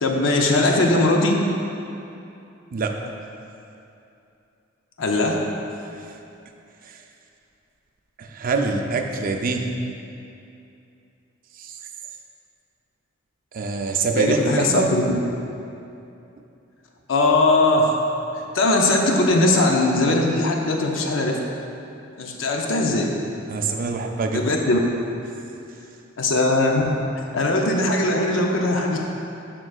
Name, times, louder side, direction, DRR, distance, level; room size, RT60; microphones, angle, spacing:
voice 1, 0.0-1.4 5.0-5.4 14.1-15.0 17.1-17.9 18.5-21.4 22.2-23.1 24.3-24.8 26.2-29.0, left 2 dB, 75° left, 1 dB, 0.6 m, -20 dB
voice 2, 8.2-9.7 11.6-11.8 13.5-14.9 23.5-24.6, right 3 dB, 45° right, 3 dB, 0.4 m, -24 dB
10.5 x 3.8 x 2.4 m, 2.7 s
head